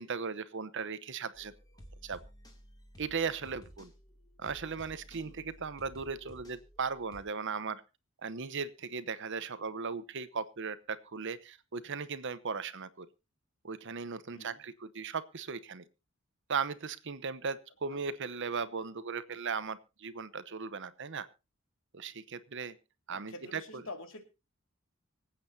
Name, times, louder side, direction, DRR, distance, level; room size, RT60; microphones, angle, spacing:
voice 1, 0.0-1.5 2.0-2.2 3.0-3.9 4.4-7.8 8.2-13.1 13.6-15.8 16.5-21.3 21.9-22.7 23.1-23.6, right 5 dB, 60° right, 14 dB, 0.9 m, -37 dB
sound 1, 1.3-7.2, equal, 20° left, 2.7 m, -54 dB
voice 2, 14.3-14.6 17.9-18.0 23.1-24.2, left 2 dB, 65° left, 5 dB, 2.5 m, -47 dB
25.0 x 8.6 x 2.8 m, 0.28 s
head